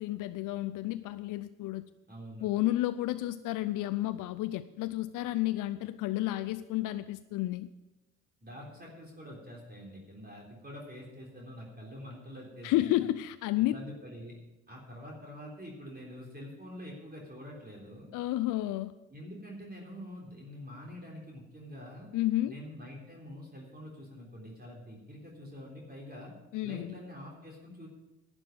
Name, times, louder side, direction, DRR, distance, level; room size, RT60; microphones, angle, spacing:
voice 1, 0.0-1.8 2.4-7.7 12.6-13.8 18.1-18.9 22.1-22.6 26.5-26.9, left 15 dB, 55° left, 13 dB, 0.5 m, -31 dB
voice 2, 2.1-2.5 8.4-13.0 13.6-14.4 14.7-18.1 19.1-22.1 22.4-26.3 26.6-27.9, equal, 25° right, -2 dB, 3.5 m, -46 dB
11.5 x 8.8 x 6.0 m, 1.0 s
hypercardioid pair, 50°, 38 cm